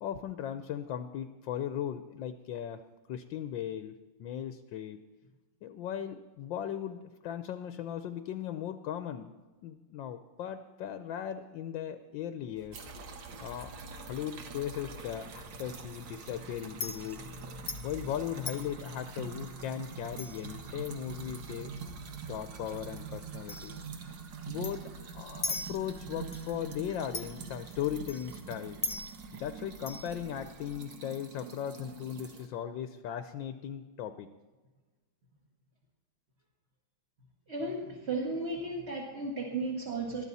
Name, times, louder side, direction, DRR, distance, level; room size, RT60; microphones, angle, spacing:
voice 1, 0.0-2.8 3.1-5.0 5.6-9.3 9.6-12.9 13.4-17.3 17.8-21.7 22.3-23.7 24.5-24.8 25.1-28.8 29.3-34.3, left 10 dB, 75° left, 9 dB, 1.4 m, -38 dB
Chink clink, 12.6-30.8, left 2 dB, 35° left, 1.4 m, -44 dB
sound 1, 12.7-32.5, right 5 dB, 65° right, 2.0 m, -45 dB
voice 2, 37.5-40.2, right 2 dB, 35° right, -1 dB, 2.0 m, -34 dB
20.5 x 13.5 x 4.2 m, 1.2 s
omnidirectional pair, 2.2 m